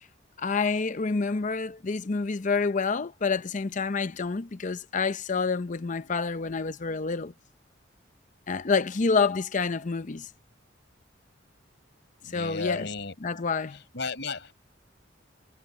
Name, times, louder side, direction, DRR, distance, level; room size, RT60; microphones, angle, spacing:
voice 1, 0.4-7.3 8.5-10.3 12.3-12.9 13.2-13.8, left 4 dB, 40° left, 0.6 m, -28 dB
voice 2, 12.2-13.1 13.7-14.5, left 4 dB, 65° left, 5.3 m, -34 dB
head